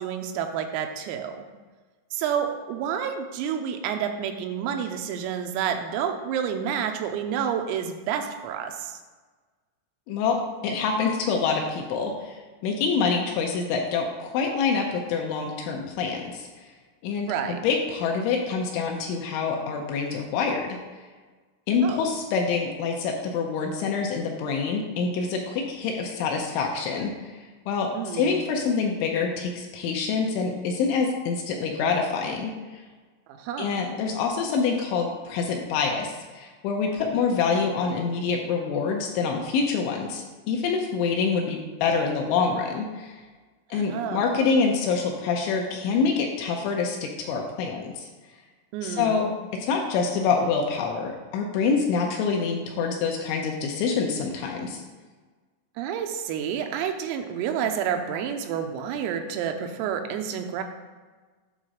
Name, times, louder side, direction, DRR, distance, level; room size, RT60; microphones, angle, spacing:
voice 1, 0.0-1.5 2.1-9.0 17.3-17.6 21.8-22.1 27.9-28.5 33.4-33.7 43.7-44.4 48.7-49.3 55.8-60.6, right 8 dB, 85° right, 5 dB, 3.4 m, -29 dB
voice 2, 10.1-12.3 12.6-16.5 17.0-20.8 21.7-27.1 27.7-32.5 33.6-43.1 43.7-48.1 48.8-49.3 49.5-54.8, left 5 dB, 80° left, 1 dB, 2.9 m, -26 dB
9.1 x 3.7 x 6.3 m, 1.3 s
omnidirectional pair, 5.9 m